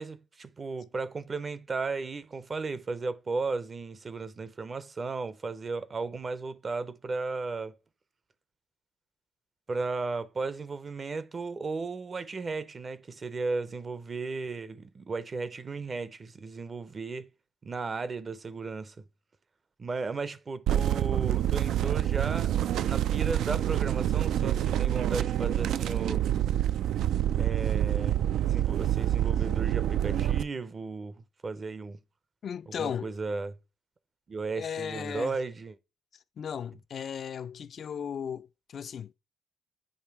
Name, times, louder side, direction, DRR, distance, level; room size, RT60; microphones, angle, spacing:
voice 1, 0.0-7.7 9.7-17.3 17.6-19.0 19.8-22.6 22.8-26.3 27.4-32.0 32.8-33.6 34.3-35.8, right 4 dB, 35° right, 0.6 m, -35 dB
sound 1, 20.7-30.4, right 11 dB, 80° right, 0.3 m, -27 dB
voice 2, 32.4-33.1 34.6-35.4 36.4-39.1, left 8 dB, 55° left, 0.4 m, -36 dB
8.7 x 3.0 x 4.6 m
cardioid pair, 90°, 0 cm